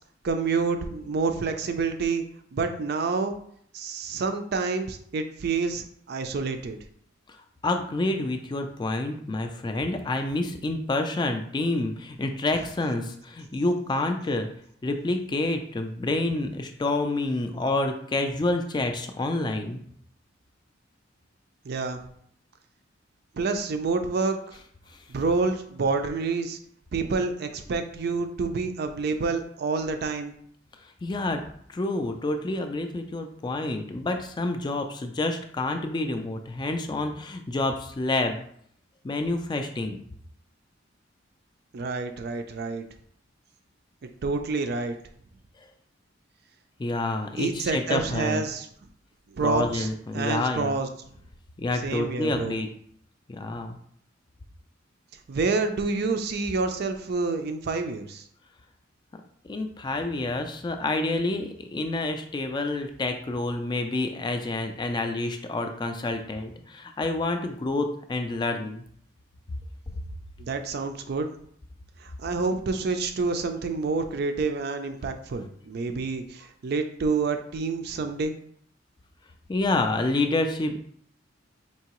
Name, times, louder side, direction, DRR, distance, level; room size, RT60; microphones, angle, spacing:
voice 1, 0.2-2.2 2.5-3.4 3.7-6.8 21.6-22.0 23.3-24.4 25.1-26.6 26.9-30.3 41.7-42.8 44.2-44.9 47.4-48.7 49.3-50.9 51.8-52.6 55.3-58.2 70.4-71.3 72.0-78.3, right 4 dB, 55° right, 7 dB, 0.4 m, -28 dB
voice 2, 7.6-14.5 14.8-19.8 31.0-31.4 31.7-38.4 39.0-40.0 46.8-48.4 49.4-50.8 51.6-52.7 53.3-53.8 59.5-68.8 79.5-80.8, left 2 dB, 20° left, 6 dB, 0.3 m, -28 dB
4.6 x 2.8 x 2.9 m, 0.65 s
head